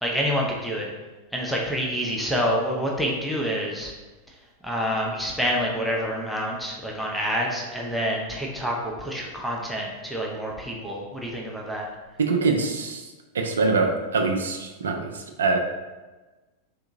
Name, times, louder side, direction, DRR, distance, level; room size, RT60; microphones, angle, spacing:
voice 1, 0.0-0.9 1.3-3.9 4.6-11.9, equal, ahead, -3 dB, 0.6 m, -27 dB
voice 2, 12.2-13.0 13.3-15.6, right 4 dB, 65° right, 3 dB, 0.4 m, -24 dB
3.5 x 2.8 x 2.6 m, 1.2 s
figure-of-eight pair, 90°, 0 cm